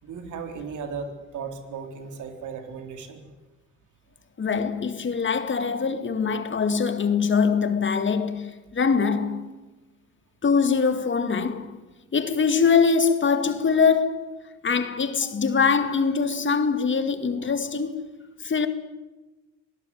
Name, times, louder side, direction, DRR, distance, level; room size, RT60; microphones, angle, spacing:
voice 1, 0.0-3.3, right 5 dB, 80° right, 4.0 m, -36 dB
voice 2, 4.4-9.5 10.4-11.8 12.1-14.3 14.6-18.0 18.4-18.7, left 5 dB, 40° left, 2.2 m, -23 dB
25.5 x 18.5 x 9.6 m
cardioid pair, 90°, 30 cm